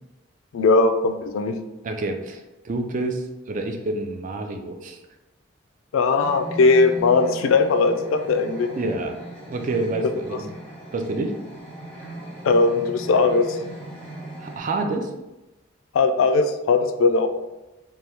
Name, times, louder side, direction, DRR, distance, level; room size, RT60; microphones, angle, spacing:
voice 1, 0.5-1.5 5.9-8.7 12.4-13.6 15.9-17.3, left 3 dB, 80° left, 8 dB, 0.3 m, -19 dB
voice 2, 1.8-5.0 8.8-10.5 10.9-11.3 14.4-15.1, right 2 dB, 40° right, 4 dB, 0.3 m, -28 dB
sound 1, 6.2-14.6, right 1 dB, 5° left, 0.8 m, -38 dB
2.9 x 2.3 x 3.3 m, 1.0 s
head